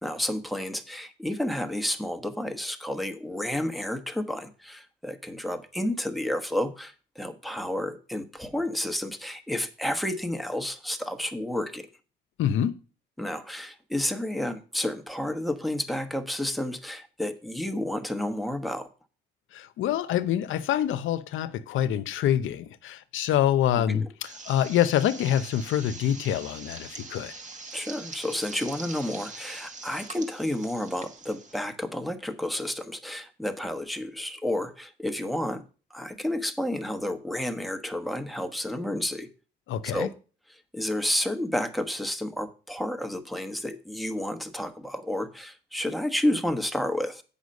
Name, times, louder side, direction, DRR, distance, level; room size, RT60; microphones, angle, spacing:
voice 1, 0.0-11.9 13.2-18.9 23.8-24.1 27.7-35.6 35.9-39.3 39.8-40.1 40.5-47.2, left 1 dB, ahead, 1.2 m, -31 dB
voice 2, 12.4-12.8 19.5-24.0 24.5-27.3 39.7-40.1, left 10 dB, 80° left, 0.8 m, -26 dB
sound 1, 24.2-31.6, right 3 dB, 40° right, 1.5 m, -43 dB
8.1 x 5.7 x 6.4 m
cardioid pair, 90°, 20 cm